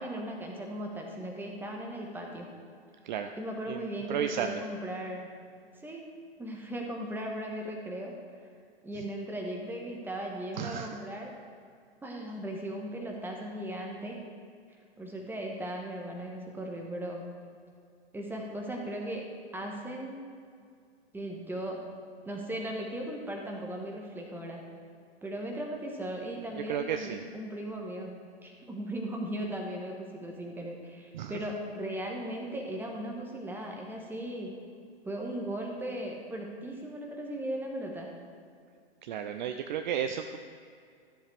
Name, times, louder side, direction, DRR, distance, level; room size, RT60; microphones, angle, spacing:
voice 1, 0.0-2.5 3.4-5.3 5.8-6.1 6.4-8.1 8.8-11.3 12.0-14.2 15.0-17.2 18.1-19.2 19.5-20.2 21.1-21.8 22.2-24.6 25.2-28.1 28.4-34.5 35.0-38.1, right 1 dB, 5° right, 0 dB, 1.3 m, -37 dB
voice 2, 3.7-4.6 10.6-10.9 26.7-27.2 31.1-31.3 39.0-40.4, right 8 dB, 45° right, 7 dB, 0.5 m, -33 dB
14.0 x 7.2 x 3.4 m, 2.3 s
figure-of-eight pair, 105°, 32 cm